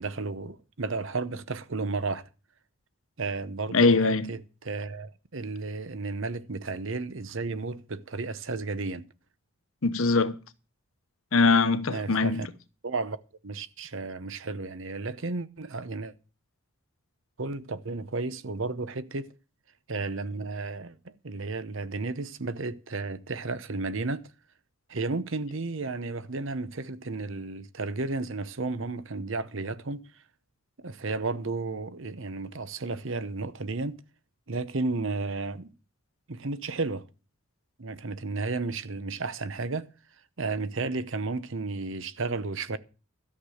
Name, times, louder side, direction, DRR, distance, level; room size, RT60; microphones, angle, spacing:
voice 1, 0.0-2.3 3.2-9.1 11.9-12.5 12.8-16.1 17.4-19.3 19.9-24.3 24.9-30.1 30.8-34.0 34.5-35.7 36.3-37.1 37.8-39.9 40.4-42.8, right 3 dB, 60° right, 0.8 m, -33 dB
voice 2, 3.7-4.3 9.8-10.4 11.3-12.4, left 3 dB, 70° left, 1.0 m, -22 dB
13.0 x 6.7 x 7.8 m
head